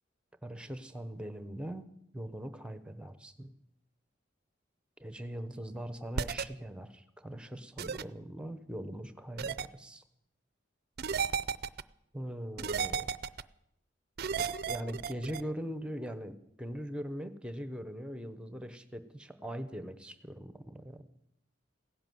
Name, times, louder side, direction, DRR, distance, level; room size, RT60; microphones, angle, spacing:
voice 1, 0.4-3.5 5.0-10.0 12.1-13.1 14.4-21.0, equal, 5° right, 12 dB, 1.0 m, -41 dB
sound 1, 6.2-6.4 7.8-8.0 9.4-9.7 11.0-11.8 12.6-13.4 14.2-15.4, right 6 dB, 55° right, 0.5 m, -33 dB
16.5 x 11.0 x 7.8 m, 0.75 s
head